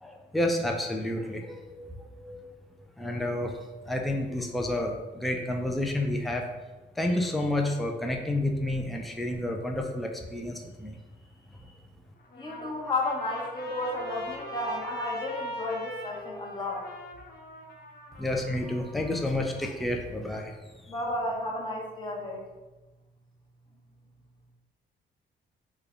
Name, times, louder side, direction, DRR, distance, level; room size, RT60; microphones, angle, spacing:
voice 1, 0.0-1.9 2.2-2.4 3.0-3.5 3.9-6.4 7.0-10.9 18.2-20.5, left 1 dB, ahead, 1 dB, 0.4 m, -30 dB
Trumpet, 12.2-19.6, equal, 50° left, 0.6 m, -43 dB
voice 2, 12.4-16.8 20.9-22.4, left 2 dB, 20° left, -3 dB, 0.9 m, -32 dB
3.3 x 2.2 x 3.6 m, 1.1 s
cardioid pair, 90°, 20 cm